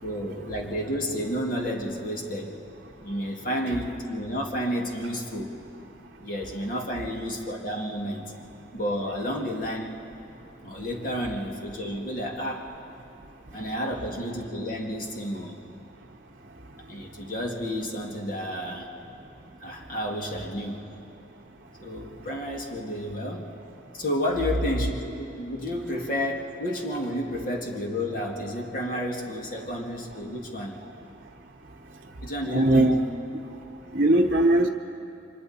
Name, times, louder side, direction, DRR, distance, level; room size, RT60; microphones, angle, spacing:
voice 1, 0.0-2.5 3.0-5.5 6.2-8.3 8.7-10.0 10.6-12.7 13.5-15.6 16.9-18.9 19.6-20.8 21.8-23.5 23.9-30.8 32.2-33.0, equal, 45° left, 0 dB, 2.1 m, -31 dB
voice 2, 32.5-33.0 33.9-34.7, right 1 dB, 45° right, -1 dB, 0.9 m, -19 dB
29.5 x 25.0 x 4.3 m, 2.7 s
head